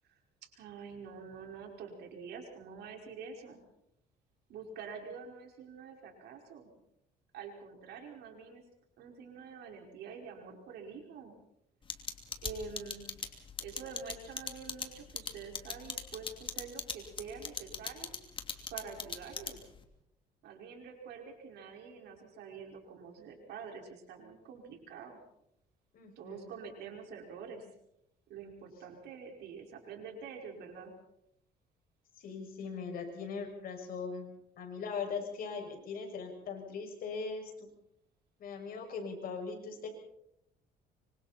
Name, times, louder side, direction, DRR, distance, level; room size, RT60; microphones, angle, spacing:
voice 1, 0.0-3.6 4.5-6.7 7.3-8.6 9.0-11.3 12.4-13.1 13.6-18.2 18.7-19.6 20.4-25.2 26.2-27.7 28.3-30.9, right 5 dB, 75° right, 2 dB, 5.3 m, -46 dB
sound 1, 11.9-19.8, left 5 dB, 30° left, 2.9 m, -38 dB
voice 2, 25.9-26.5 32.2-37.7 38.4-39.9, left 5 dB, 60° left, 3 dB, 6.8 m, -40 dB
25.5 x 25.0 x 4.4 m, 0.78 s
cardioid pair, 110°, 17 cm